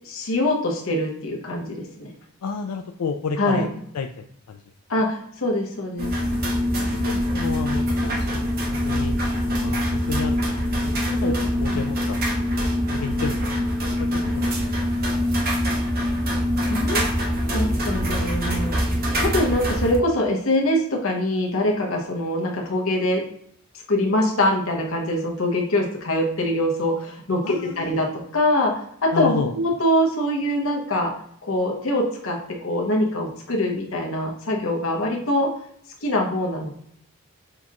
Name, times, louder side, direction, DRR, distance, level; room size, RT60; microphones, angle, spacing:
voice 1, 0.0-2.1 3.4-3.7 4.9-6.2 11.2-11.3 16.7-17.1 17.5-18.8 19.2-23.2 23.9-31.1 31.4-35.5 36.0-36.7, left 1 dB, 65° left, 1 dB, 1.0 m, -23 dB
voice 2, 2.4-3.7 3.9-4.6 6.8-8.3 8.9-9.2 9.6-11.3 11.6-12.2 12.9-13.6 14.0-14.9 27.4-28.0 29.1-29.5, left 5 dB, 90° left, 5 dB, 0.4 m, -31 dB
sound 1, 6.0-20.0, equal, 40° right, 0.9 m, -24 dB
6.3 x 2.9 x 2.3 m, 0.69 s
head